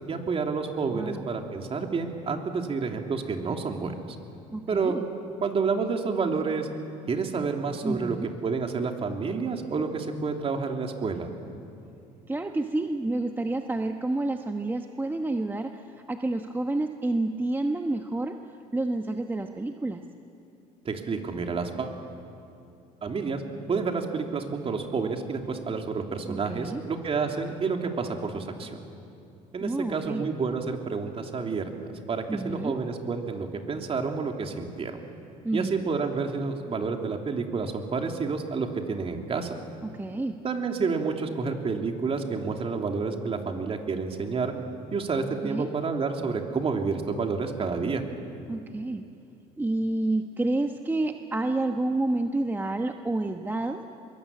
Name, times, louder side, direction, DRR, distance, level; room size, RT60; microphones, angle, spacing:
voice 1, 0.1-4.2 4.7-5.0 5.4-6.7 7.1-8.2 8.4-11.3 20.8-21.9 23.0-23.4 23.7-28.8 29.5-31.7 32.1-35.0 35.5-39.6 40.4-44.5 44.9-48.0, right 4 dB, 35° right, 3 dB, 3.0 m, -29 dB
voice 2, 0.9-1.3 4.5-5.0 7.8-8.3 12.3-18.4 18.7-20.0 26.2-26.8 29.6-30.3 32.3-32.7 35.4-35.8 39.8-40.4 45.4-45.7 48.5-49.0 49.6-53.9, right 2 dB, 10° right, 5 dB, 1.1 m, -29 dB
23.0 x 22.5 x 8.7 m, 2.7 s
supercardioid pair, 95°, 16 cm